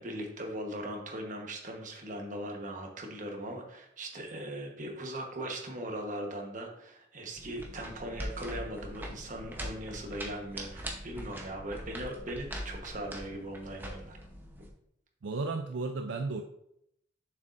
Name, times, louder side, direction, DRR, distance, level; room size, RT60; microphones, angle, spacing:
voice 1, 0.0-14.2, right 1 dB, 40° right, 2 dB, 1.2 m, -39 dB
sound 1, 7.4-14.7, equal, 10° right, 0.9 m, -42 dB
voice 2, 15.2-16.4, right 3 dB, 70° right, 5 dB, 0.4 m, -33 dB
7.0 x 6.6 x 2.6 m, 0.76 s
head